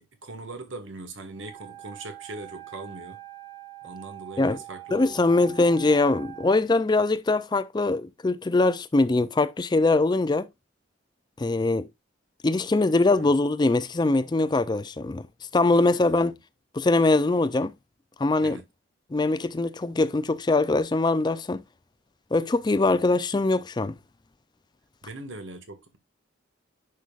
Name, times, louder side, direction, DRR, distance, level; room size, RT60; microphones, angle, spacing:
voice 1, 0.0-3.2 3.8-5.1 13.2-13.3 16.0-16.3 18.4-18.6 25.0-26.0, right 2 dB, 75° right, 1.7 m, -41 dB
Wind instrument woodwind instrument, 1.3-6.6, right 16 dB, 20° right, 1.1 m, -44 dB
voice 2, 4.9-10.5 11.4-11.9 12.4-15.2 15.5-16.3 16.7-17.7 18.2-18.6 19.1-21.6 22.3-24.0, left 2 dB, 20° left, 0.4 m, -22 dB
10.0 x 5.4 x 2.4 m
head